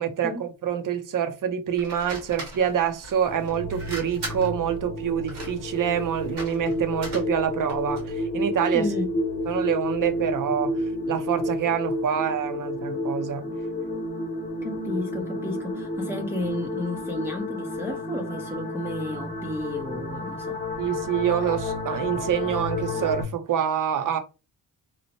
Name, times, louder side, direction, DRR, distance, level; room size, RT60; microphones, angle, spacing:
voice 1, 0.0-8.9 9.5-13.5 20.8-24.2, right 9 dB, 55° right, 0.6 m, -26 dB
sound 1, 1.8-8.1, right 2 dB, 90° right, 1.4 m, -40 dB
sound 2, 3.3-23.2, left 1 dB, 20° left, 0.9 m, -31 dB
voice 2, 8.7-9.1 14.6-20.6, left 2 dB, 5° right, 0.5 m, -32 dB
2.8 x 2.1 x 2.9 m
cardioid pair, 80°, 39 cm